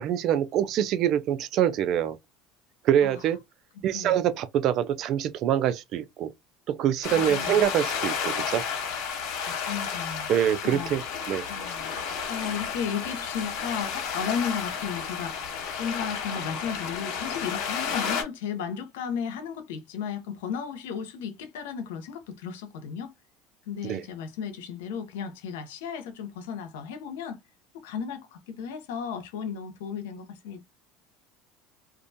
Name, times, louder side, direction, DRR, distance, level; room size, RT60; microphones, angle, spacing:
voice 1, 0.0-2.2 2.8-3.4 3.8-6.3 6.7-8.6 10.3-11.0 11.3-11.4 23.9-24.0, right 10 dB, 60° right, 0.4 m, -25 dB
sound 1, 7.0-18.2, left 6 dB, 70° left, 0.9 m, -32 dB
voice 2, 7.1-7.6 9.5-10.3 10.6-10.9 11.5-11.9 12.3-15.4 15.8-23.1 23.7-27.4 27.7-30.6, left 7 dB, 85° left, 0.6 m, -34 dB
2.3 x 2.2 x 2.6 m
supercardioid pair, 90°, 0 cm